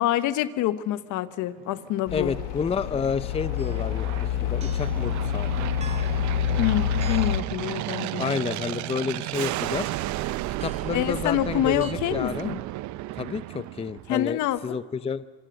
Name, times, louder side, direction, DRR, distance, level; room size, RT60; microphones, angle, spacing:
voice 1, 0.0-2.3 6.6-8.3 10.9-12.6 14.1-14.8, left 13 dB, 60° left, 13 dB, 1.3 m, -26 dB
Aircraft, 1.6-14.3, right 16 dB, 60° right, 0.8 m, -34 dB
sound 1, 2.1-7.4, left 11 dB, 80° left, 1.3 m, -27 dB
voice 2, 2.1-5.5 8.2-9.9 10.6-12.5 13.2-15.3, left 6 dB, 15° left, 14 dB, 0.6 m, -30 dB
sound 2, 3.6-3.8 4.6-5.0 5.8-6.3 7.0-7.5 8.2-8.7 9.4-9.8 10.6-11.0 11.8-11.9, right 4 dB, 20° right, 2.4 m, -45 dB
26.0 x 23.5 x 6.6 m, 1.5 s
supercardioid pair, 100°, 34 cm